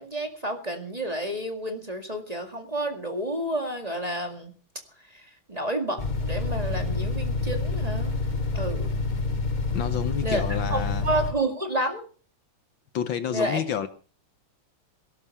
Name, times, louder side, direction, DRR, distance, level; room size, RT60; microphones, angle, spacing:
voice 1, 0.0-4.5 5.1-8.1 8.5-8.9 10.2-10.4 10.7-12.1 13.3-13.6, right 1 dB, 20° right, 5 dB, 1.9 m, -30 dB
sound 1, 6.0-11.3, left 3 dB, 30° left, 1.0 m, -28 dB
voice 2, 9.7-11.1 12.9-13.9, left 8 dB, 65° left, 12 dB, 1.6 m, -29 dB
18.0 x 11.0 x 5.6 m, 0.39 s
omnidirectional pair, 2.4 m